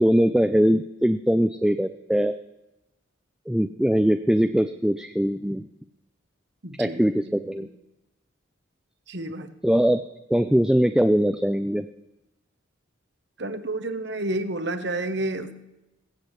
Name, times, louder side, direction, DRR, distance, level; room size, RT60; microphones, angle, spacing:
voice 1, 0.0-2.3 3.5-5.6 6.8-7.7 9.6-10.0 10.3-11.9, equal, 5° right, 7 dB, 0.3 m, -21 dB
voice 2, 6.6-7.0 7.3-7.7 9.1-9.5 13.4-15.5, right 2 dB, 60° right, 9 dB, 1.0 m, -30 dB
22.0 x 8.4 x 3.2 m, 0.96 s
head